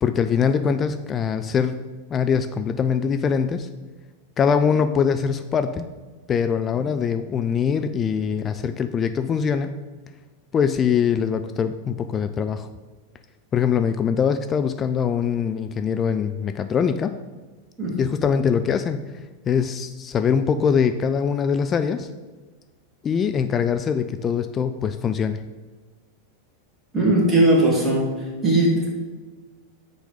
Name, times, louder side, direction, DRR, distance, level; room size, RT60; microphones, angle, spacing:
voice 1, 0.0-1.8 2.1-3.7 4.4-5.9 6.3-9.8 10.5-12.7 13.5-17.1 18.0-19.1 19.5-22.1 23.0-25.4, left 7 dB, 25° left, 9 dB, 0.4 m, -23 dB
voice 2, 26.9-28.1 28.4-28.9, right 1 dB, 10° right, -4 dB, 2.5 m, -18 dB
6.3 x 4.9 x 6.6 m, 1.3 s
figure-of-eight pair, 90°, 0 cm